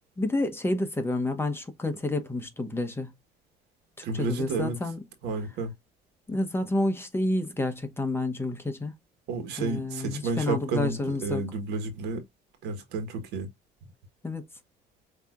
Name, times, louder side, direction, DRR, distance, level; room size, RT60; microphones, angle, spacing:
voice 1, 0.2-3.1 4.0-5.0 6.3-8.9 9.6-11.4 14.2-14.5, left 2 dB, 15° left, 1.0 m, -29 dB
voice 2, 4.0-4.8 5.2-5.7 9.3-12.2 12.6-13.5, right 3 dB, 85° right, 1.6 m, -31 dB
6.7 x 2.9 x 2.5 m
cardioid pair, 110°, 17 cm